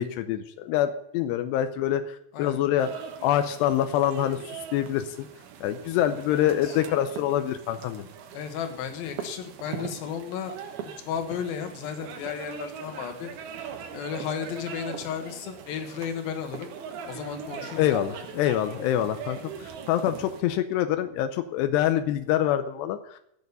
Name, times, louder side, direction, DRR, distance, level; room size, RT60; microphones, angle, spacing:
voice 1, 0.0-2.9 3.2-5.3 5.6-8.1 17.8-23.2, left 11 dB, 90° left, 9 dB, 2.8 m, -26 dB
sound 1, 2.8-20.4, right 7 dB, 70° right, 3.0 m, -41 dB
voice 2, 6.3-6.8 8.3-10.6 11.1-13.3 13.9-16.7 17.1-18.0, left 7 dB, 65° left, 6 dB, 3.1 m, -34 dB
15.5 x 6.6 x 6.7 m, 0.77 s
omnidirectional pair, 4.9 m